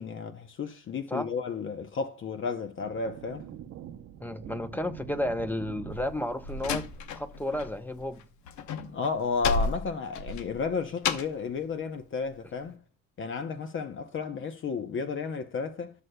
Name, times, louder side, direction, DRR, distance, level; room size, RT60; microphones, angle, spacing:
voice 1, 0.0-3.5 8.8-12.8 13.2-15.9, left 5 dB, 40° left, 0.7 m, -32 dB
sound 1, 2.8-8.4, right 9 dB, 60° right, 0.7 m, -46 dB
voice 2, 4.2-6.9 7.1-8.2, left 1 dB, 5° left, 0.6 m, -32 dB
Slam, 5.9-7.7 8.0-11.5, left 5 dB, 70° left, 0.9 m, -32 dB
12.5 x 6.5 x 2.2 m
cardioid pair, 115°, 30 cm